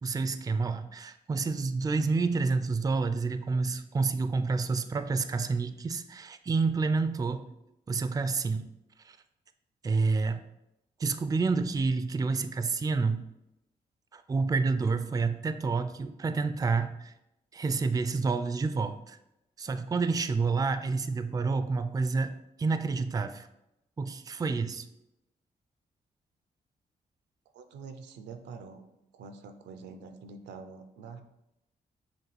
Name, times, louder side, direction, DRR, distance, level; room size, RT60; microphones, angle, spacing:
voice 1, 0.0-7.5 7.9-8.7 9.0-9.2 9.8-10.4 11.0-13.2 14.1-17.1 17.5-19.2 19.6-23.5 24.0-24.9, right 4 dB, 20° right, 10 dB, 0.3 m, -29 dB
voice 2, 27.5-28.9 29.1-31.2, right 5 dB, 85° right, 7 dB, 0.4 m, -46 dB
5.8 x 2.3 x 3.2 m, 0.89 s
supercardioid pair, 50°, 18 cm